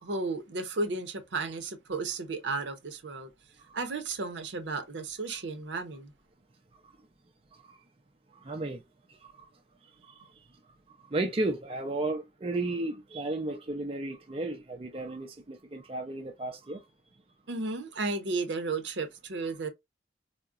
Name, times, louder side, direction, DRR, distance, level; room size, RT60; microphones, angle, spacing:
voice 1, 0.0-3.3 3.7-6.1 17.5-19.7, right 3 dB, 80° right, 0.7 m, -33 dB
voice 2, 8.4-8.8 9.2-9.5 10.1-10.2 11.1-16.8, right 2 dB, 30° right, 0.4 m, -33 dB
3.7 x 2.1 x 2.3 m
head